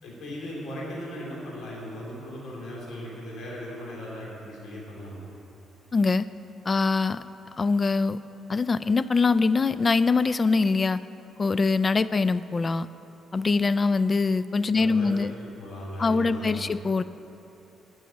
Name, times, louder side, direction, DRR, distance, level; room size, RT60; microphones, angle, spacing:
voice 1, 0.0-5.3 14.7-15.1 15.4-16.8, equal, 70° left, -4 dB, 2.9 m, -38 dB
voice 2, 5.9-6.3 6.7-7.2 7.6-8.2 8.5-11.0 11.4-12.9 13.3-15.3 16.0-17.0, left 4 dB, 30° left, 15 dB, 0.3 m, -23 dB
9.9 x 6.3 x 8.7 m, 2.9 s
cardioid pair, 90°, 0 cm